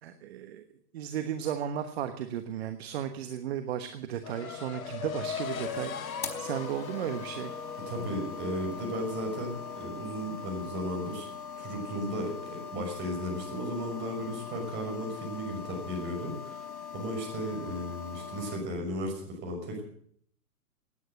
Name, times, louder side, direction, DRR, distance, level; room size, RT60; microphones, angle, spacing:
voice 1, 0.0-0.6 0.9-7.5, right 9 dB, 40° right, 9 dB, 1.3 m, -35 dB
sound 1, 4.2-9.9, left 7 dB, 60° left, 2.0 m, -40 dB
sound 2, 5.0-18.6, left 6 dB, 75° left, 4.6 m, -42 dB
voice 2, 7.9-11.3 11.6-16.7 16.9-19.8, equal, 25° right, 2 dB, 5.7 m, -35 dB
18.0 x 9.6 x 7.9 m, 0.64 s
hypercardioid pair, 140°, 47 cm